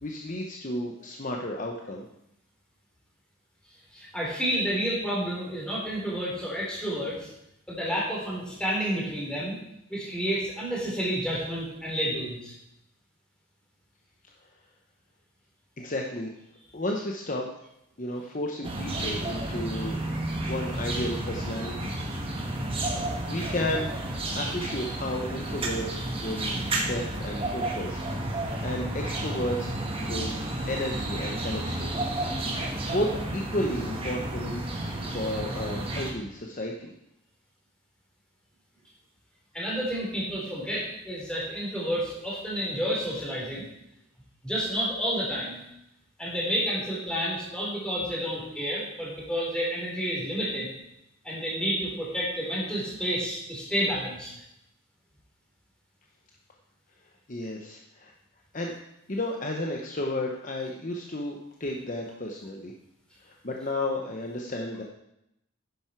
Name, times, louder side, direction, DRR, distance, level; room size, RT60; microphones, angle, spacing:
voice 1, 0.0-2.1 15.8-16.3 16.7-17.5 18.0-20.0 20.5-21.9 22.9-23.9 24.3-28.0 28.4-29.7 30.0-30.4 30.7-31.9 32.9-36.9 57.3-58.1 58.5-58.7 59.1-62.7 63.2-64.8, left 1 dB, 40° left, 1 dB, 0.9 m, -33 dB
voice 2, 3.9-7.3 7.7-9.6 9.9-12.5 39.5-43.6 44.4-45.6 46.2-50.7 51.2-54.3, equal, 5° left, -5 dB, 4.1 m, -30 dB
sound 1, 18.6-36.1, right 1 dB, 25° right, 1.8 m, -31 dB
10.5 x 10.5 x 4.6 m, 0.82 s
head